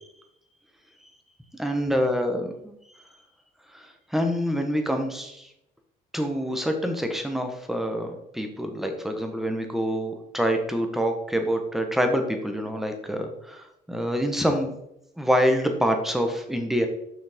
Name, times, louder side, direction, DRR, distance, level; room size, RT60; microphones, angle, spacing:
voice 1, 1.6-2.8 3.7-5.5 6.1-14.7 15.2-16.9, equal, ahead, 4 dB, 1.1 m, -26 dB
6.3 x 5.8 x 3.6 m, 0.80 s
cardioid pair, 110°, 17 cm